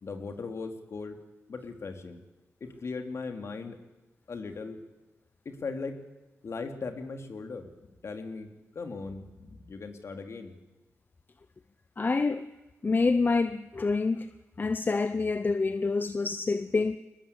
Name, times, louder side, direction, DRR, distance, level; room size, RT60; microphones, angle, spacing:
voice 1, 0.0-1.2 1.5-2.2 2.6-3.8 4.3-4.8 5.4-6.0 6.4-7.7 8.0-8.5 8.7-10.5, left 4 dB, 55° left, 2.9 m, -38 dB
voice 2, 12.0-12.5 12.8-14.3 14.6-17.0, left 4 dB, 35° left, 0.8 m, -27 dB
22.5 x 20.0 x 8.4 m
cardioid pair, 75°, 6 cm